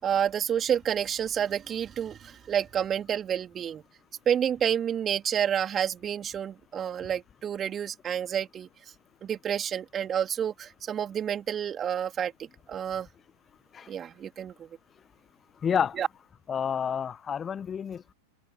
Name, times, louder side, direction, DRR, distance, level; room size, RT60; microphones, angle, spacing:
voice 1, 0.0-3.8 4.3-8.7 9.2-13.1 13.9-14.7 15.9-16.1, right 9 dB, 25° right, 3.9 m, -29 dB
voice 2, 15.6-16.0 16.5-18.1, left 7 dB, 20° left, 1.2 m, -29 dB
figure-of-eight pair, 90°, 0 cm